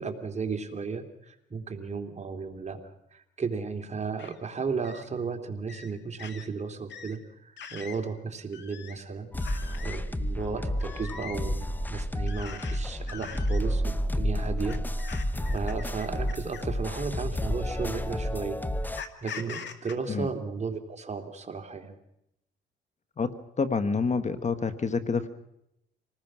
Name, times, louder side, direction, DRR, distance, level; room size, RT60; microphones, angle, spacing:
voice 1, 0.0-2.8 3.1-22.0, right 5 dB, 35° right, 5 dB, 2.8 m, -35 dB
sound 1, 4.2-4.4 4.8-5.1 5.7-5.9 6.2-6.5 6.9-7.2 7.6-8.0 8.5-9.0 9.4-10.0 10.8-11.4 12.3-12.8 13.1-13.6 14.6-16.8 17.7-17.8 19.0-19.9, left 7 dB, 65° left, 2.2 m, -42 dB
sound 2, 9.3-19.0, equal, 10° left, 1.0 m, -30 dB
voice 2, 23.6-25.3, left 4 dB, 35° left, 10 dB, 1.4 m, -27 dB
26.5 x 19.5 x 6.2 m, 0.82 s
cardioid pair, 90°, 20 cm